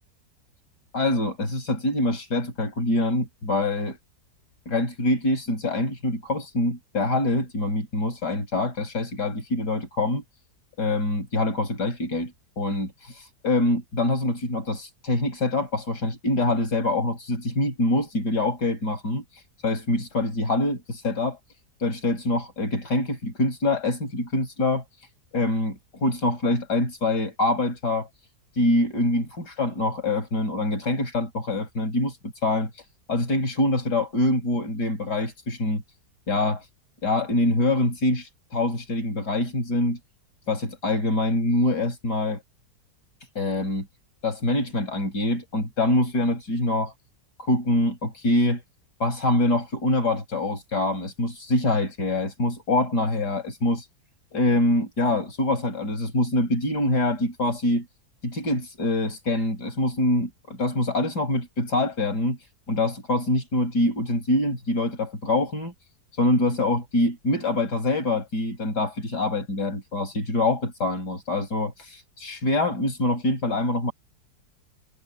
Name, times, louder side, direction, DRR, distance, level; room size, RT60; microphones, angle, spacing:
voice 1, 0.9-4.0 4.7-10.2 10.8-12.9 13.4-21.4 21.8-28.1 28.5-35.8 36.3-36.7 37.0-40.0 40.5-42.4 43.3-43.9 44.2-46.9 47.4-48.6 49.0-53.9 54.3-57.9 58.2-62.4 62.7-65.7 66.1-73.9, left 2 dB, 85° left, 6.4 m, -25 dB
omnidirectional pair, 1.7 m